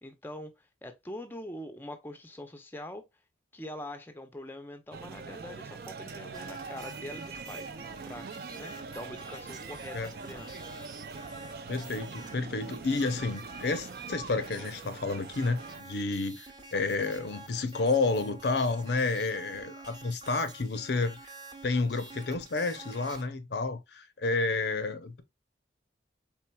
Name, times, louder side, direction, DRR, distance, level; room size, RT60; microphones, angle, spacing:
voice 1, 0.0-3.1 3.5-7.7 8.0-10.6, left 1 dB, 10° left, 0.5 m, -43 dB
sound 1, 4.9-15.8, right 4 dB, 55° right, 0.5 m, -43 dB
sound 2, 6.3-23.2, right 3 dB, 25° right, 0.8 m, -49 dB
voice 2, 11.7-16.5 16.7-21.2 21.6-25.2, left 3 dB, 65° left, 0.6 m, -30 dB
4.4 x 3.7 x 2.2 m
head